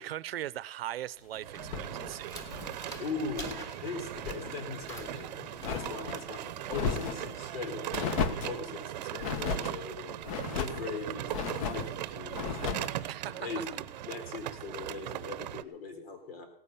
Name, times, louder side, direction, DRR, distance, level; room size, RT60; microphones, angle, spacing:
voice 1, 0.0-2.5 13.1-13.5, right 12 dB, 75° right, 0.7 m, -39 dB
sound 1, 1.3-7.0, equal, 10° left, 1.5 m, -49 dB
sound 2, 1.4-15.6, right 13 dB, 45° right, 0.8 m, -39 dB
sound 3, 1.6-3.7 4.0-4.5 4.9-6.2 6.7-7.3 7.9-8.6 9.2-9.8 10.2-10.9 11.3-11.9 12.3-12.9, left 6 dB, 35° left, 1.0 m, -35 dB
voice 2, 3.0-7.9 8.3-10.2 10.5-12.9 13.2-16.5, left 4 dB, 75° left, 4.1 m, -40 dB
17.5 x 10.0 x 7.1 m
supercardioid pair, 170°, 30 cm